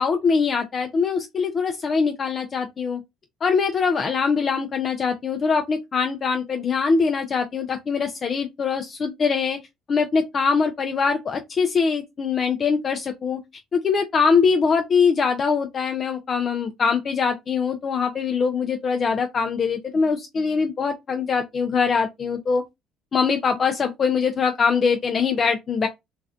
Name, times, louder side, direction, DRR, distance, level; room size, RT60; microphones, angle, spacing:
voice 1, 0.0-3.0 3.4-9.6 9.9-13.4 13.7-22.6 23.1-25.9, left 5 dB, 45° left, 0.4 m, -22 dB
2.4 x 2.1 x 2.4 m
supercardioid pair, 70°, 0 cm